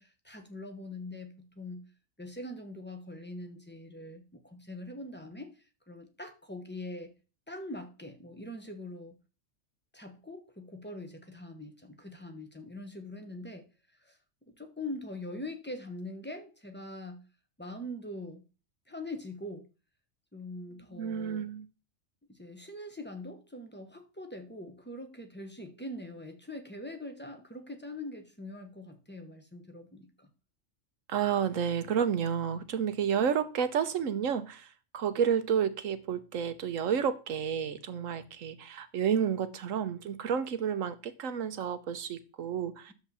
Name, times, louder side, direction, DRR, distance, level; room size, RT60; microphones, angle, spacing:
voice 1, 0.0-1.8 2.2-5.5 5.9-7.1 7.5-9.2 9.9-13.6 14.0-14.2 14.6-17.2 17.6-18.4 18.9-19.7 20.3-21.5 22.3-30.3, left 1 dB, 10° left, 6 dB, 1.0 m, -43 dB
voice 2, 20.9-21.7 31.1-34.7 34.9-42.9, right 8 dB, 75° right, 12 dB, 1.2 m, -30 dB
10.5 x 7.2 x 4.2 m, 0.35 s
omnidirectional pair, 1.4 m